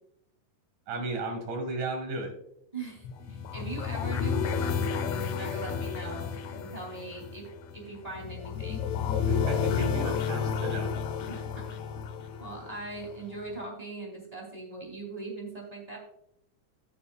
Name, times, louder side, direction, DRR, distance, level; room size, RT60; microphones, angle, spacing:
voice 1, 0.9-2.3 9.3-10.9, right 3 dB, 70° right, 4 dB, 3.3 m, -34 dB
voice 2, 2.7-7.5 7.7-8.9 11.3-11.8 12.4-16.0, right 3 dB, 10° right, -1 dB, 2.7 m, -41 dB
sound 1, 3.0-13.1, left 6 dB, 75° left, 1.8 m, -31 dB
15.5 x 6.9 x 2.4 m, 0.79 s
omnidirectional pair, 3.8 m